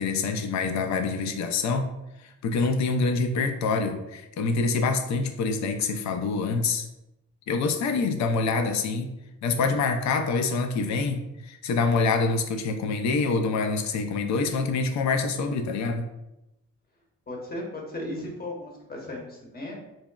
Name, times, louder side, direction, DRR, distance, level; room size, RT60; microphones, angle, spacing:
voice 1, 0.0-1.9 2.2-6.9 7.5-9.1 9.4-16.0, left 4 dB, 65° left, 6 dB, 0.5 m, -26 dB
voice 2, 17.3-19.8, left 1 dB, 30° left, 0 dB, 0.9 m, -36 dB
3.9 x 2.0 x 2.2 m, 0.92 s
cardioid pair, 90°, 30 cm